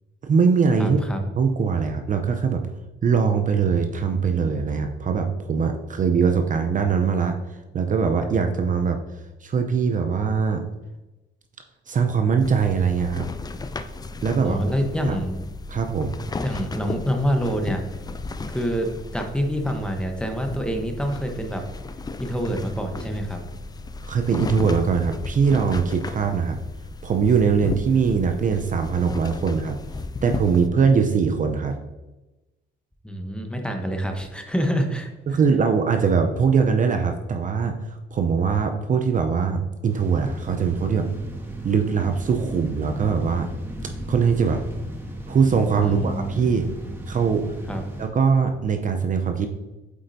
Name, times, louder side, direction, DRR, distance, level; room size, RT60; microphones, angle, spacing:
voice 1, 0.2-1.0 1.4-2.6 3.0-9.0 9.4-10.7 11.9-13.3 14.2-14.6 15.0-15.2 15.7-16.2 24.1-26.6 27.0-29.8 30.2-31.7 35.3-41.1 41.6-43.5 44.1-44.6 45.3-46.7 47.1-47.6 48.0-49.5, right 5 dB, 40° right, 5 dB, 0.6 m, -22 dB
voice 2, 0.8-1.2 14.4-15.4 16.4-17.8 18.5-21.6 22.2-23.4 33.0-35.4 45.8-46.3 47.7-47.8, equal, 5° left, 3 dB, 0.9 m, -26 dB
sound 1, 12.4-30.7, left 3 dB, 20° left, 0.4 m, -35 dB
sound 2, 39.9-48.1, right 1 dB, 10° right, 1.3 m, -35 dB
8.3 x 4.3 x 2.6 m, 1.1 s
cardioid pair, 90°, 20 cm